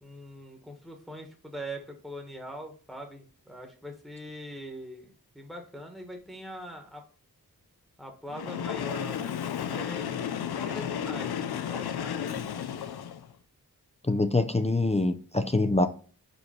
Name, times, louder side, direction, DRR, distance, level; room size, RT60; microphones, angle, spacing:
voice 1, 0.0-7.0 8.0-10.1 10.6-12.2, equal, ahead, 2 dB, 1.2 m, -42 dB
Train, 8.3-13.3, left 8 dB, 90° left, 0.5 m, -33 dB
voice 2, 14.1-15.9, left 2 dB, 20° left, 8 dB, 0.5 m, -25 dB
5.3 x 4.6 x 4.3 m, 0.40 s
wide cardioid pair, 70°, 37 cm